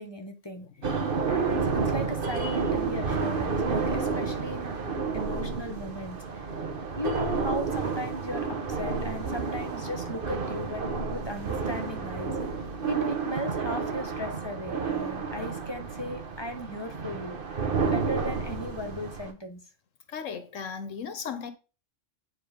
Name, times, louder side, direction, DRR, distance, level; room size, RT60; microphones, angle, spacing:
voice 1, 0.0-0.7 1.2-4.8 5.1-6.5 7.0-12.3 12.9-17.4 17.9-19.6, left 1 dB, 20° left, 1.1 m, -37 dB
voice 2, 0.8-1.1 20.1-21.5, left 6 dB, 85° left, 1.3 m, -37 dB
sound 1, 0.8-19.3, right 4 dB, 45° right, 1.2 m, -30 dB
9.7 x 3.4 x 5.1 m
omnidirectional pair, 1.3 m